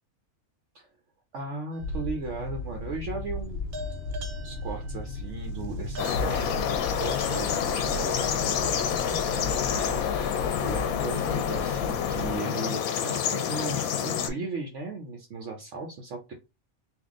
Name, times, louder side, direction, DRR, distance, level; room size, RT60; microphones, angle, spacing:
voice 1, 1.3-3.8 4.4-16.3, right 3 dB, 60° right, 2 dB, 1.0 m, -37 dB
sound 1, 1.7-2.3 3.7-8.2, right 2 dB, 80° right, 1.2 m, -45 dB
sound 2, 1.8-12.4, left 2 dB, 60° left, 0.7 m, -35 dB
sound 3, 6.0-14.3, left 8 dB, 80° left, 1.1 m, -28 dB
3.6 x 2.6 x 3.6 m, 0.25 s
omnidirectional pair, 1.5 m